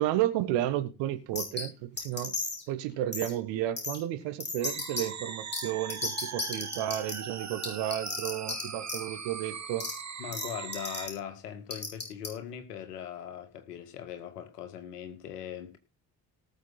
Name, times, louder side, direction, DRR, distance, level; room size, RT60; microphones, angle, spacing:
voice 1, 0.0-2.3 2.7-9.9, right 13 dB, 65° right, 1.5 m, -32 dB
sound 1, 1.4-1.6 2.0-2.6 3.1-3.3 3.8-4.0 4.4-5.0 5.5-5.6 5.9-7.1 7.6-8.6 8.9-9.0 9.8-9.9 10.3-10.5 10.7-11.1 11.7-12.3, left 3 dB, 20° left, 6.5 m, -33 dB
sound 2, 4.6-11.1, right 6 dB, 35° right, 2.0 m, -40 dB
voice 2, 10.2-15.8, left 9 dB, 80° left, 2.0 m, -40 dB
18.5 x 7.1 x 3.9 m
figure-of-eight pair, 40°, 46 cm